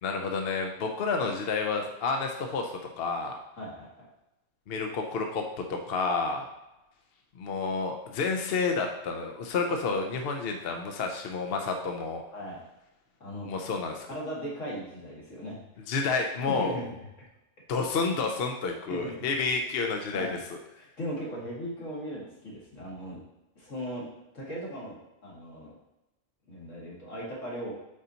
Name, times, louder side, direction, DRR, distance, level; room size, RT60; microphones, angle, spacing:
voice 1, 0.0-3.4 4.7-5.4 5.7-6.5 7.4-12.2 13.4-14.1 15.9-16.8 17.7-20.3, left 4 dB, 60° left, 3 dB, 0.8 m, -30 dB
voice 2, 3.6-3.9 12.3-12.6 13.2-13.5 14.1-15.6 16.6-16.9 18.9-19.2 20.1-20.4 20.8-23.2 23.6-24.1 24.3-25.7 26.5-27.7, equal, 80° left, -5 dB, 2.2 m, -38 dB
8.3 x 4.0 x 2.8 m, 0.95 s
omnidirectional pair, 1.3 m